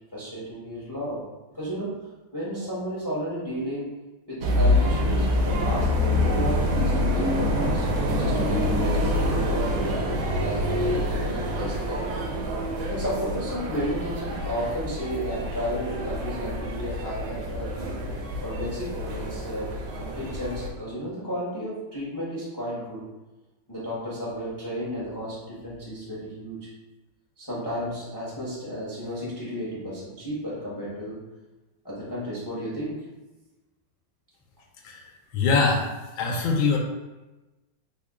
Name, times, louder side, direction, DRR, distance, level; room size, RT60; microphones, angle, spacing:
voice 1, 0.1-1.2 1.5-1.9 2.3-3.9 4.3-7.9 8.1-10.0 10.4-12.1 12.9-18.0 18.4-23.1 23.7-26.7 27.4-31.2 31.8-33.1, equal, 25° left, -8 dB, 0.5 m, -33 dB
sound 1, 4.4-20.7, left 1 dB, 90° right, 1.5 m, -26 dB
voice 2, 35.3-35.9 36.2-36.8, left 4 dB, 80° left, 0 dB, 1.4 m, -22 dB
3.6 x 2.2 x 3.6 m, 1.1 s
omnidirectional pair, 2.2 m